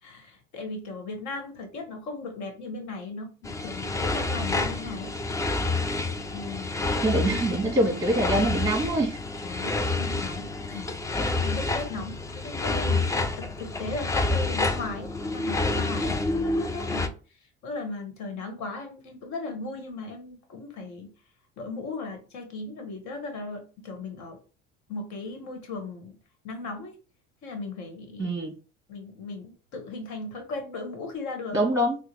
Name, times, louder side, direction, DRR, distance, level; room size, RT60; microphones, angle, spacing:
voice 1, 0.0-5.1 6.3-7.3 9.4-10.9 11.4-17.4 17.6-21.1 21.6-24.4 24.9-26.2 26.4-27.0 27.4-28.4 28.9-31.7, left 3 dB, 60° left, 5 dB, 1.2 m, -37 dB
sound 1, 3.4-17.1, left 2 dB, 10° left, 0.3 m, -28 dB
voice 2, 7.0-9.2 28.2-28.5 31.5-32.0, right 1 dB, 10° right, 2 dB, 1.2 m, -24 dB
3.6 x 2.0 x 3.0 m, 0.36 s
hypercardioid pair, 80°, 32 cm